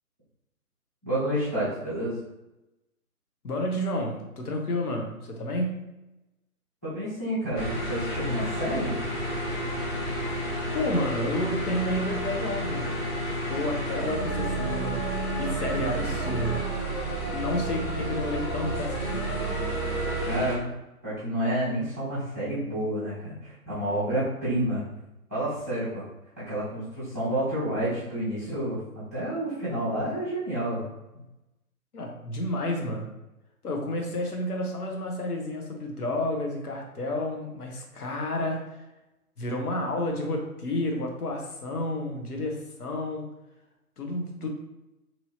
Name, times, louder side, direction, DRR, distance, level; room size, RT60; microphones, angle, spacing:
voice 1, 1.0-2.2 6.8-9.0 20.3-20.7 21.0-24.8 25.3-26.0 26.5-28.8 29.1-30.8, right 1 dB, 10° right, -13 dB, 0.5 m, -29 dB
voice 2, 3.4-5.9 10.7-12.9 13.5-15.0 15.4-16.7 17.3-19.3 31.9-33.1 33.6-38.6 39.4-43.3 44.0-44.5, left 1 dB, 80° left, 1 dB, 0.9 m, -30 dB
sound 1, 7.5-20.5, right 1 dB, 15° left, 1.0 m, -30 dB
3.0 x 2.7 x 2.7 m, 0.97 s
figure-of-eight pair, 140°, 45 cm